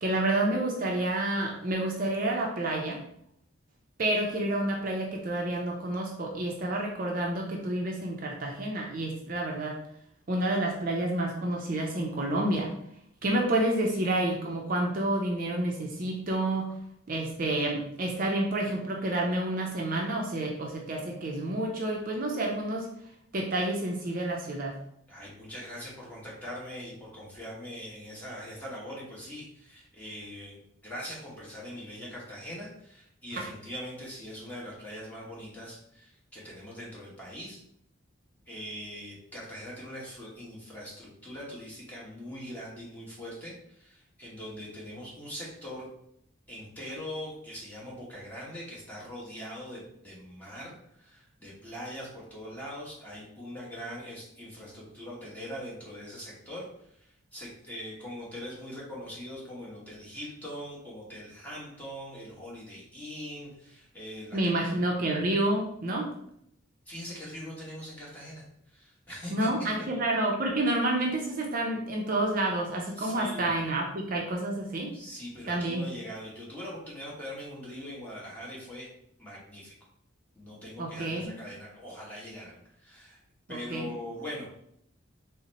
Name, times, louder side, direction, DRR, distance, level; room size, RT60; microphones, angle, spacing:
voice 1, 0.0-3.0 4.0-9.8 10.3-12.7 13.2-16.7 17.1-22.9 23.3-24.8 33.3-33.4 64.3-66.1 69.3-74.9 75.5-75.8 80.8-81.3 83.5-83.9, right 1 dB, 45° right, -1 dB, 0.5 m, -29 dB
voice 2, 25.1-37.6 38.5-45.9 46.5-64.5 66.9-69.3 73.0-73.5 74.9-78.9 79.2-79.7 80.3-83.2 83.5-84.6, equal, 10° left, -6 dB, 1.1 m, -42 dB
3.9 x 2.1 x 4.0 m, 0.73 s
head